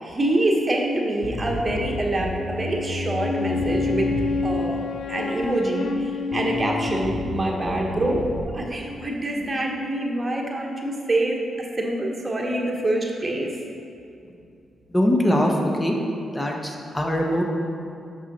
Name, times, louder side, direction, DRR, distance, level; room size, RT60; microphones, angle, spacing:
voice 1, 0.0-8.3 8.5-13.5, right 1 dB, 30° right, 0 dB, 1.2 m, -26 dB
Bass guitar, 1.2-4.8 5.4-6.0 6.3-8.4, left 1 dB, 55° left, 0.8 m, -32 dB
Wind instrument woodwind instrument, 3.2-7.5, left 4 dB, 75° left, 0.4 m, -28 dB
voice 2, 14.9-16.0 16.3-17.4, equal, 20° left, 0 dB, 1.0 m, -22 dB
6.1 x 5.6 x 4.0 m, 2.6 s
supercardioid pair, 50°, 0 cm